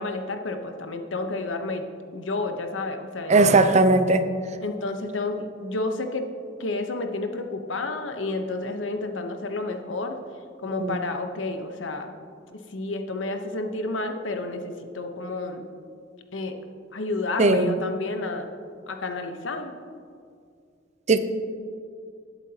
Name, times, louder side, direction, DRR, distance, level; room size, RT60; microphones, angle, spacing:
voice 1, 0.0-3.4 4.6-6.2 6.6-10.2 10.6-12.1 12.7-15.6 16.3-16.5 16.9-18.5 18.9-19.7, left 2 dB, 85° left, 6 dB, 0.9 m, -30 dB
voice 2, 3.3-4.3 10.8-11.0 17.4-17.7 21.1-21.2, right 2 dB, 35° right, 9 dB, 0.6 m, -18 dB
18.5 x 8.2 x 2.9 m, 2.3 s
head